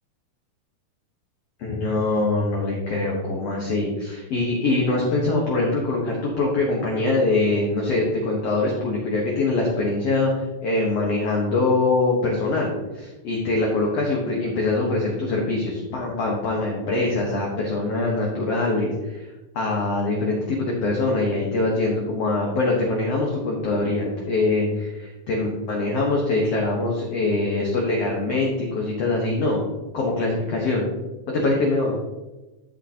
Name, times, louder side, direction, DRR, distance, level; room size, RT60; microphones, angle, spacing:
voice 1, 1.6-29.6 29.9-30.9 31.3-31.9, left 2 dB, 60° left, -2 dB, 1.9 m, -23 dB
13.5 x 5.0 x 2.9 m, 1.1 s
omnidirectional pair, 4.0 m